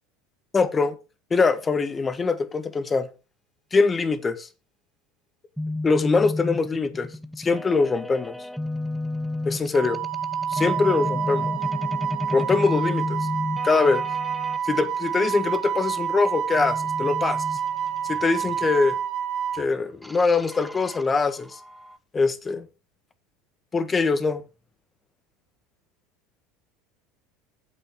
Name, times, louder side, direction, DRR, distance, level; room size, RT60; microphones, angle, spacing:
voice 1, 0.5-1.0 1.3-3.1 3.7-4.5 5.8-7.1 7.4-8.4 9.4-10.0 10.5-11.5 12.3-13.3 13.6-14.0 14.6-17.4 18.1-19.0 19.5-21.6 22.1-22.7 23.7-24.4, left 4 dB, 25° left, 1.5 m, -23 dB
sound 1, 5.6-14.6 16.6-18.5 20.0-22.0, left 2 dB, ahead, 0.8 m, -32 dB
Wind instrument woodwind instrument, 9.7-19.6, right 8 dB, 50° right, 1.4 m, -28 dB
8.8 x 8.0 x 4.4 m
hypercardioid pair, 75°, 0 cm